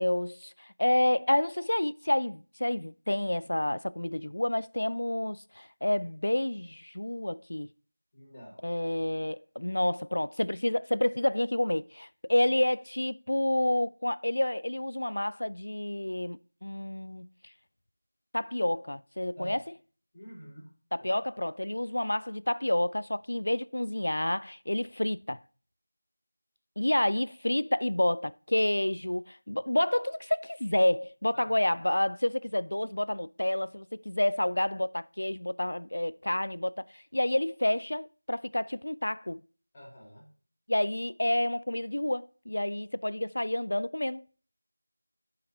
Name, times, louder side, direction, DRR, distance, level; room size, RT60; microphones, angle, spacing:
voice 1, 0.0-7.7 8.6-17.3 18.3-19.6 20.9-25.4 26.8-39.4 40.7-44.2, left 1 dB, 70° left, 0.4 m, -29 dB
voice 2, 8.1-8.6 19.3-19.6 20.1-20.7 21.0-21.2 39.7-40.3, equal, 15° left, 3.0 m, -47 dB
16.0 x 5.8 x 2.8 m
figure-of-eight pair, 175°, 0 cm